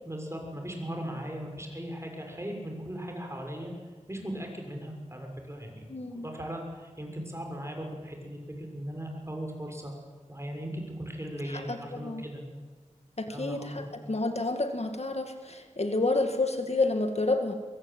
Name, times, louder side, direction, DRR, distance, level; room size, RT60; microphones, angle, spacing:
voice 1, 0.0-3.7 4.1-5.8 6.1-9.9 10.3-12.4 13.3-13.9, equal, 20° right, 2 dB, 6.7 m, -38 dB
voice 2, 5.9-6.3 11.5-12.2 13.2-17.5, left 2 dB, 55° left, 6 dB, 2.2 m, -29 dB
23.5 x 23.0 x 9.0 m, 1.4 s
wide cardioid pair, 50°, 13 cm